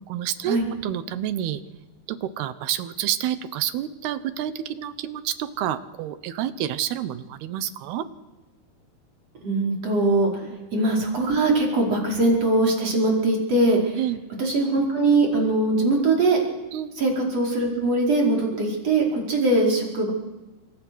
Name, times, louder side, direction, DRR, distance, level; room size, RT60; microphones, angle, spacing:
voice 1, 0.0-1.6 2.1-8.1 14.0-14.2 16.7-16.9, right 11 dB, 80° right, 12 dB, 3.0 m, -29 dB
voice 2, 9.4-14.0 14.4-16.4 17.0-20.1, right 2 dB, 40° right, -1 dB, 5.9 m, -21 dB
28.5 x 26.0 x 6.3 m, 1.1 s
omnidirectional pair, 4.6 m